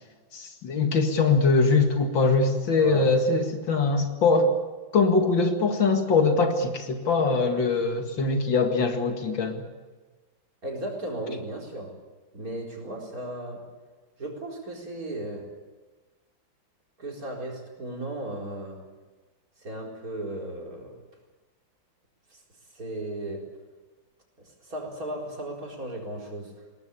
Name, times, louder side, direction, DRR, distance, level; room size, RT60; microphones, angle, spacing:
voice 1, 0.3-4.5 4.9-9.6, left 3 dB, 80° left, 5 dB, 2.8 m, -22 dB
voice 2, 10.6-11.9 12.3-13.6 14.2-15.5 17.0-18.8 19.6-21.0 22.3-22.4 22.7-23.4 24.4-26.5, right 1 dB, 50° right, -1 dB, 4.8 m, -35 dB
21.0 x 19.0 x 8.4 m, 1.3 s
omnidirectional pair, 2.0 m